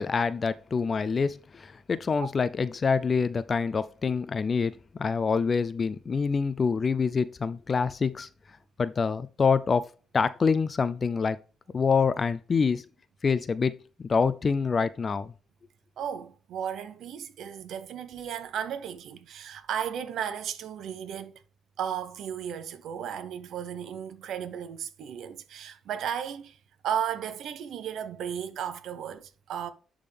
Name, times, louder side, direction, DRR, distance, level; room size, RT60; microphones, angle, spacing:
voice 1, 0.0-8.3 8.8-9.9 10.1-11.4 11.7-12.8 13.2-13.8 14.0-15.3, left 5 dB, 40° left, 0.4 m, -26 dB
voice 2, 16.0-21.4 21.8-26.6 26.8-29.7, right 9 dB, 75° right, 0.8 m, -35 dB
10.5 x 3.7 x 3.4 m
cardioid pair, 90°, 0 cm